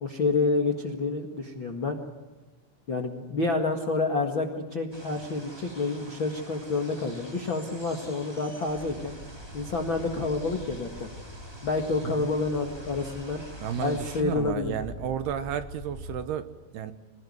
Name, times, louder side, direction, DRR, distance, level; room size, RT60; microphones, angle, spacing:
voice 1, 0.0-2.0 2.9-9.1 9.5-11.1 11.6-13.4 13.8-14.8, left 3 dB, 50° left, 3 dB, 1.5 m, -28 dB
sound 1, 4.9-14.2, equal, 10° right, 1.7 m, -47 dB
sound 2, 8.7-16.3, left 1 dB, 15° left, 4.5 m, -44 dB
voice 2, 13.6-16.9, right 9 dB, 75° right, 11 dB, 2.8 m, -32 dB
26.5 x 19.0 x 9.5 m, 1.2 s
omnidirectional pair, 5.3 m